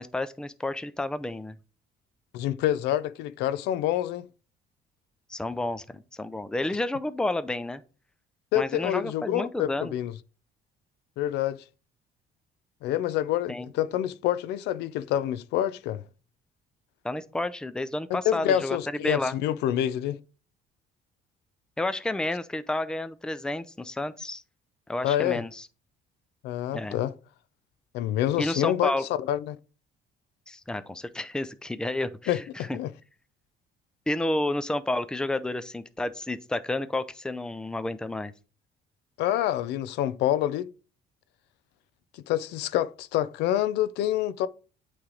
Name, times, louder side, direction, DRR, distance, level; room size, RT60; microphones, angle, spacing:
voice 1, 0.0-1.6 5.3-7.8 8.5-9.9 13.5-13.7 17.0-18.8 19.0-19.4 21.8-24.4 24.9-25.6 26.7-27.0 28.4-29.1 30.5-32.7 34.1-38.3, left 2 dB, 5° left, 0.4 m, -30 dB
voice 2, 2.3-4.3 8.5-10.1 11.2-11.6 12.8-16.0 18.1-20.2 25.0-25.4 26.4-27.1 27.9-28.9 29.2-29.6 32.3-32.9 39.2-40.7 42.1-44.5, left 12 dB, 85° left, 0.5 m, -27 dB
8.6 x 3.3 x 3.8 m
cardioid pair, 110°, 17 cm